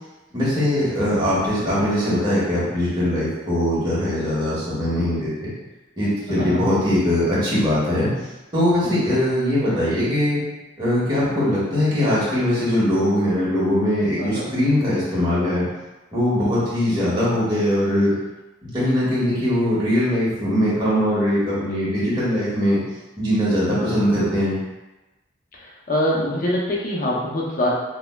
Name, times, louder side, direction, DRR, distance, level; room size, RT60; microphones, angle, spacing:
voice 1, 0.3-5.5 6.0-8.1 8.5-10.4 10.8-15.7 16.1-18.1 18.6-22.8 23.2-24.6, left 1 dB, 25° right, -9 dB, 1.2 m, -21 dB
voice 2, 6.3-6.7 8.8-9.1 14.2-14.5 23.8-24.1 25.5-27.7, left 1 dB, 45° left, -4 dB, 0.6 m, -25 dB
5.1 x 2.1 x 2.3 m, 1.1 s
head